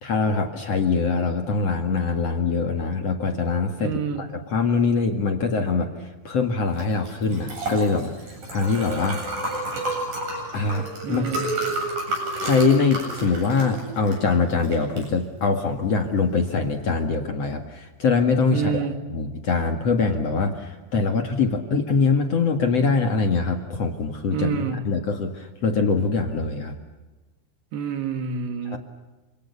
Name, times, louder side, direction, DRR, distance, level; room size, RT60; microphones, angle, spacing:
voice 1, 0.0-5.9 6.2-8.1 8.5-9.2 10.5-11.3 12.4-18.8 19.1-26.7 28.7-28.8, left 4 dB, 50° left, 5 dB, 2.4 m, -23 dB
voice 2, 3.8-4.3 11.0-11.5 18.5-19.0 24.3-24.8 27.7-28.8, right 6 dB, 75° right, 7 dB, 4.2 m, -28 dB
Liquid, 6.7-16.9, right 2 dB, 50° right, 9.6 m, -31 dB
30.0 x 27.0 x 6.9 m, 1.2 s
omnidirectional pair, 4.8 m